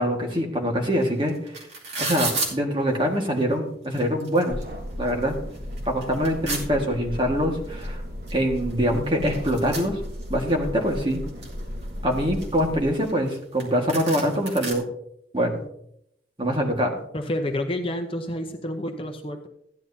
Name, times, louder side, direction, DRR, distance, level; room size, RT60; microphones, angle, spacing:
voice 1, 0.0-1.5 2.0-4.6 5.0-5.3 5.8-8.0 8.3-10.0 10.3-11.2 12.0-14.8 15.3-15.6 16.4-17.0, equal, 30° right, 1 dB, 1.7 m, -24 dB
sound 1, 1.0-1.1 1.3-2.5 3.4-3.5 3.8-4.6 5.1-5.2 5.5-6.6 7.8-7.9 8.3-8.4 8.6-10.5 10.9-11.6 12.1-13.3 13.6-13.7 13.9-14.7, right 3 dB, 75° right, 2.6 m, -31 dB
sound 2, 4.5-12.8, equal, 55° right, 1.1 m, -35 dB
voice 2, 17.1-19.5, left 1 dB, 30° left, 5 dB, 0.7 m, -29 dB
15.0 x 10.5 x 2.7 m, 0.74 s
head